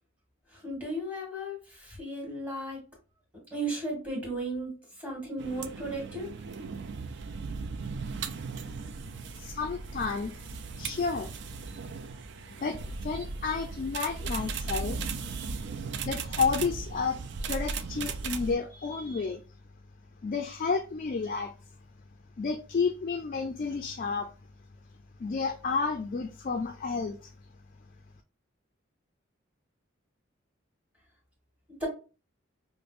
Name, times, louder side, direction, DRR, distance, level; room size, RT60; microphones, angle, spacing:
voice 1, 0.5-2.8 3.5-4.7 5.0-6.3 31.8-31.9, right 1 dB, 5° right, 1.5 m, -35 dB
sound 1, 5.4-18.5, right 4 dB, 55° right, 0.4 m, -37 dB
voice 2, 9.3-10.5 10.8-11.3 12.6-15.7 16.0-17.2 17.5-19.4 20.2-21.5 22.4-24.3 25.2-27.3, left 5 dB, 40° left, 0.3 m, -31 dB
5.0 x 2.0 x 2.5 m
head